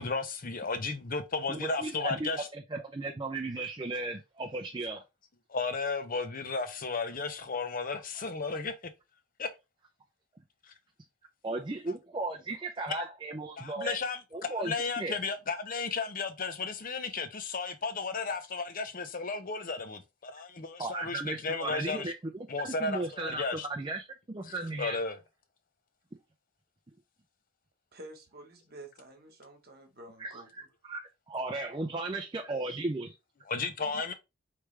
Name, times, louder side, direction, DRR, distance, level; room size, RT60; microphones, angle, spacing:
voice 1, 0.0-2.5 5.5-8.7 9.4-9.5 10.6-10.7 12.9-13.1 13.6-22.1 22.5-23.7 24.5-25.2 33.5-34.1, left 4 dB, 40° left, 0.6 m, -34 dB
voice 2, 1.5-5.0 11.4-14.0 14.3-15.2 20.8-22.1 22.6-25.0 30.2-33.1, right 2 dB, 20° right, 0.4 m, -36 dB
voice 3, 27.9-30.5, right 2 dB, 45° right, 1.3 m, -50 dB
4.7 x 3.3 x 3.3 m
head